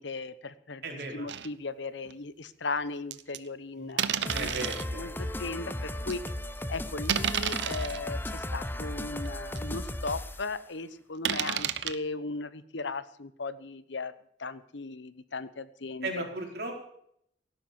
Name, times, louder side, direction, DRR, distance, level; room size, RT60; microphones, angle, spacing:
voice 1, 0.0-6.2 6.7-14.1 14.4-16.2, left 3 dB, 80° left, 15 dB, 1.0 m, -37 dB
voice 2, 0.8-1.3 3.8-5.1 16.0-16.7, right 2 dB, 60° right, 0 dB, 4.8 m, -37 dB
sound 1, 1.3-1.5 2.0-2.1 3.1-3.4 4.0-4.8 5.5-5.6 6.1-6.3 7.0-8.0 8.7-8.8 9.2-9.3 9.6-9.7 11.2-11.9, right 9 dB, 75° right, 0.9 m, -31 dB
sound 2, 4.3-10.5, left 1 dB, 10° left, 0.7 m, -36 dB
17.5 x 10.0 x 7.1 m, 0.70 s
head